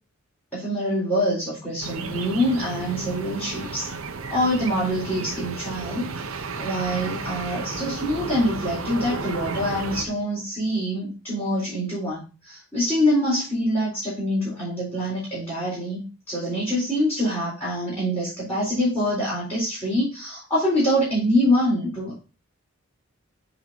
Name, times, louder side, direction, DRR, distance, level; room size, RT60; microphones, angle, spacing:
voice 1, 0.5-3.9 4.3-16.0 16.3-22.2, equal, 10° left, -11 dB, 4.0 m, -25 dB
sound 1, 1.8-10.1, right 4 dB, 80° right, 0.8 m, -33 dB
9.1 x 4.2 x 3.9 m, 0.32 s
head